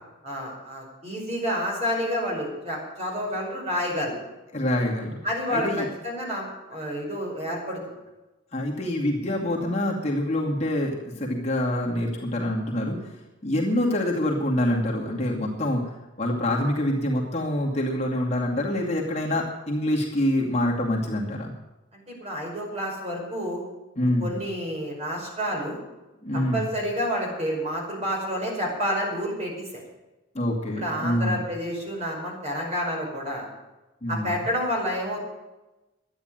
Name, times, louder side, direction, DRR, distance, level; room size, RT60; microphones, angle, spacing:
voice 1, 0.2-4.1 5.2-7.8 21.9-23.6 24.0-25.8 26.3-29.8 30.8-33.5 34.1-35.2, equal, 35° right, -1 dB, 5.4 m, -29 dB
voice 2, 4.5-5.2 5.5-5.9 8.5-13.2 13.4-15.8 16.2-21.5 24.0-24.3 26.2-26.6 30.3-31.4 34.0-34.3, left 1 dB, 35° left, -2 dB, 2.4 m, -26 dB
12.5 x 9.9 x 9.0 m, 1.0 s
head